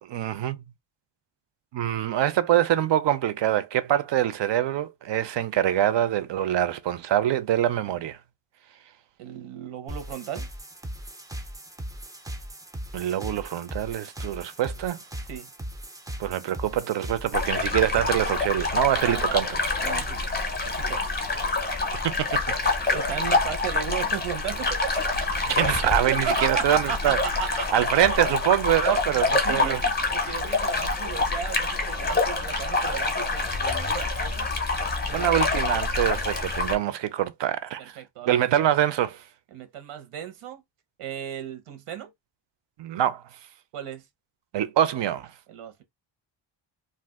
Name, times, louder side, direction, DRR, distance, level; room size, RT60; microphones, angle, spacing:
voice 1, 0.0-0.6 1.7-8.2 12.9-15.0 16.2-19.6 22.0-22.8 25.5-27.2 27.7-29.8 35.1-38.0 38.3-39.2 42.8-43.2 44.5-45.3, right 11 dB, 60° right, 0.5 m, -24 dB
voice 2, 9.2-10.5 15.3-15.5 19.0-19.2 19.8-21.1 22.9-25.0 26.0-27.8 29.4-34.5 35.1-35.4 37.8-38.4 39.5-40.6 41.0-42.1 43.7-44.0 45.5-45.8, right 9 dB, 85° right, 1.0 m, -35 dB
sound 1, 9.9-17.5, right 1 dB, 10° right, 0.3 m, -38 dB
sound 2, 17.3-36.7, left 3 dB, 20° left, 0.6 m, -26 dB
2.5 x 2.4 x 3.5 m
wide cardioid pair, 165°, 49 cm